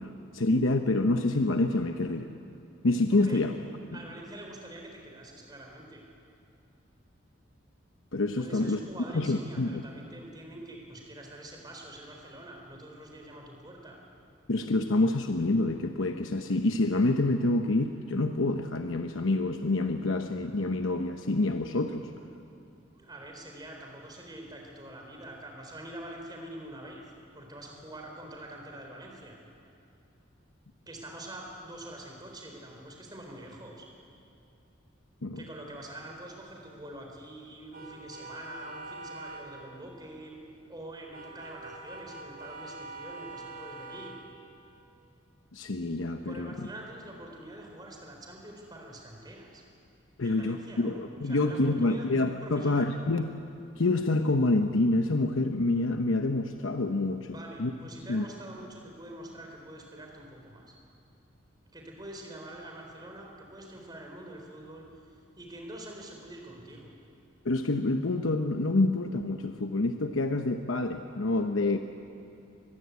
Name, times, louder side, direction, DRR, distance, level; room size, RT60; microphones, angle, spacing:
voice 1, 0.0-2.3 2.8-3.5 8.1-8.8 9.1-9.8 14.5-22.1 35.2-35.4 45.5-46.7 50.2-53.3 53.8-57.7 58.1-58.3 67.4-71.8, left 2 dB, 85° left, 6 dB, 0.9 m, -27 dB
voice 2, 3.1-3.5 3.9-6.0 8.4-14.0 22.9-27.0 27.3-29.4 30.9-33.9 35.4-40.4 40.7-44.2 46.2-49.6 50.2-52.9 57.3-60.7 61.7-67.0, right 1 dB, 20° right, 1 dB, 4.0 m, -45 dB
sound 1, 37.7-39.4 41.1-44.1, right 2 dB, 50° right, 4.5 m, -44 dB
23.5 x 20.0 x 8.4 m, 2.6 s
head